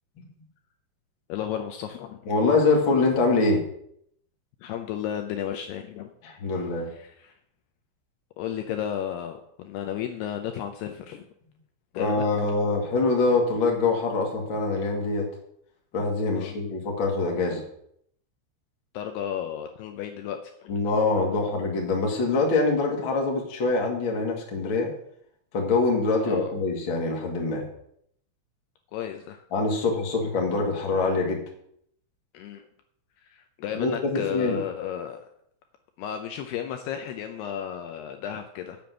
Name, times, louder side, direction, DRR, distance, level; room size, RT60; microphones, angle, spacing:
voice 1, 1.3-2.2 4.6-6.1 6.9-7.3 8.4-11.2 11.9-12.3 16.4-16.6 18.9-20.8 26.2-26.5 28.9-29.4 32.3-32.6 33.3-35.2 36.0-38.8, left 10 dB, 85° left, 5 dB, 2.3 m, -33 dB
voice 2, 2.3-3.6 6.2-6.9 11.9-15.3 15.9-17.6 20.7-24.9 25.5-27.7 29.5-31.4 33.7-34.6, left 3 dB, 40° left, 0 dB, 1.7 m, -24 dB
7.7 x 7.0 x 8.3 m, 0.70 s
omnidirectional pair, 5.5 m